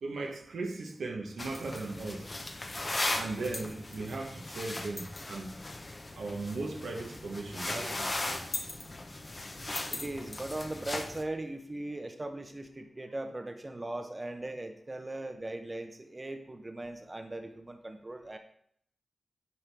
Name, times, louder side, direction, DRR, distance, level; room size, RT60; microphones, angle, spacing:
voice 1, 0.0-2.3 3.2-5.6 6.2-8.4, right 3 dB, 85° right, 1.0 m, -37 dB
sound 1, 1.4-11.2, left 2 dB, 40° left, 0.9 m, -38 dB
voice 2, 9.9-18.4, right 1 dB, 30° right, 0.8 m, -39 dB
8.7 x 4.4 x 3.4 m
cardioid pair, 50°, 0 cm